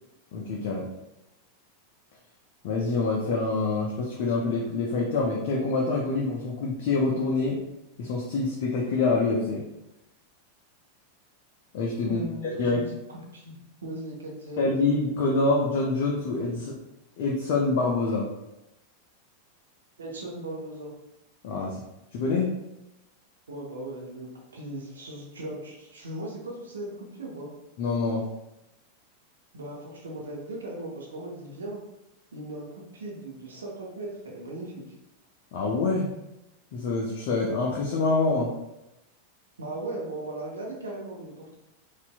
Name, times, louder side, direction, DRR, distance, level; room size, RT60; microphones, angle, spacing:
voice 1, 0.3-0.9 2.6-7.6 8.0-9.6 11.7-12.2 12.6-12.8 14.6-16.7 17.2-18.3 21.4-21.8 22.1-22.5 27.8-28.2 35.5-36.1 36.7-38.5, left 3 dB, 50° left, -2 dB, 0.5 m, -26 dB
voice 2, 12.0-13.5 13.8-14.7 20.0-20.9 23.5-27.5 29.5-31.8 32.3-34.8 39.6-41.5, right 1 dB, 70° right, -1 dB, 0.8 m, -38 dB
4.2 x 2.5 x 2.2 m, 0.91 s
figure-of-eight pair, 90°, 0 cm